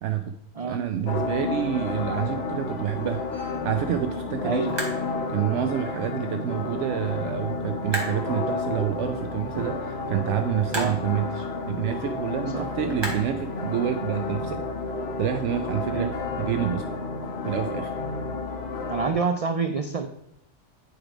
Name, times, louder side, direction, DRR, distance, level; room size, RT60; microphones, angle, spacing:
voice 1, 0.0-0.3 0.6-3.2 3.6-4.7 5.3-14.6 15.2-16.1 16.4-16.9 17.4-17.9, right 10 dB, 80° right, 7 dB, 0.9 m, -28 dB
sound 1, 0.9-14.1, right 1 dB, 20° right, 1.8 m, -40 dB
sound 2, 1.1-19.1, left 3 dB, 60° left, 1.2 m, -31 dB
voice 2, 18.9-20.1, right 5 dB, 45° right, 7 dB, 0.4 m, -27 dB
9.4 x 4.7 x 5.0 m, 0.75 s
omnidirectional pair, 1.2 m